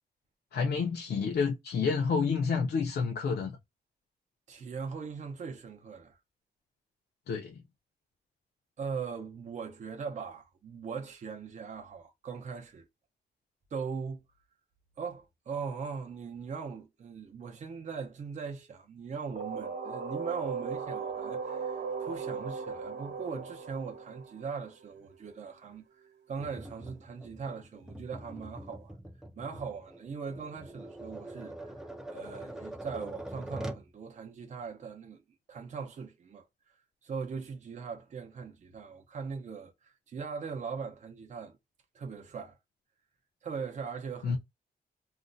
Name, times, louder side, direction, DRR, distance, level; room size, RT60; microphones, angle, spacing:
voice 1, 0.5-3.5 7.3-7.6 44.2-44.4, left 5 dB, 70° left, 0.5 m, -29 dB
voice 2, 4.5-6.2 8.8-12.9 13.7-14.2 15.0-29.0 29.4-31.7 32.1-35.2 35.5-36.4 37.0-41.6 41.9-42.6 43.4-44.4, right 5 dB, 45° right, 0.6 m, -40 dB
sound 1, 19.4-25.1, right 5 dB, 90° right, 1.0 m, -37 dB
Tap, 26.4-33.9, right 1 dB, 5° right, 0.3 m, -44 dB
2.4 x 2.1 x 3.8 m
wide cardioid pair, 175°, 17 cm